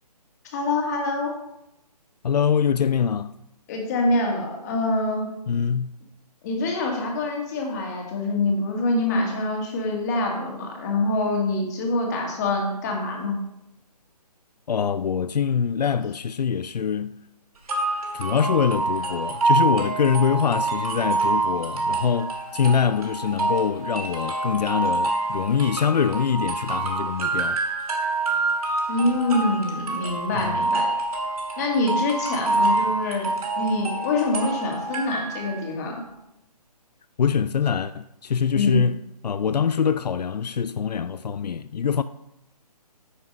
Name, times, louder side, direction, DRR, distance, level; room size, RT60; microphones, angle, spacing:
voice 1, 0.5-1.3 3.7-5.3 6.4-13.4 28.9-30.9 31.6-33.3 33.6-36.0 38.5-38.8, left 2 dB, 25° left, 1.9 m, -25 dB
voice 2, 2.2-3.3 5.5-5.9 14.7-17.2 18.1-27.6 30.4-30.7 37.2-39.0 39.2-42.0, left 7 dB, 80° left, 0.5 m, -24 dB
sound 1, 17.7-35.6, right 3 dB, 65° right, 2.7 m, -26 dB
9.6 x 5.9 x 5.4 m
hypercardioid pair, 160°, 20 cm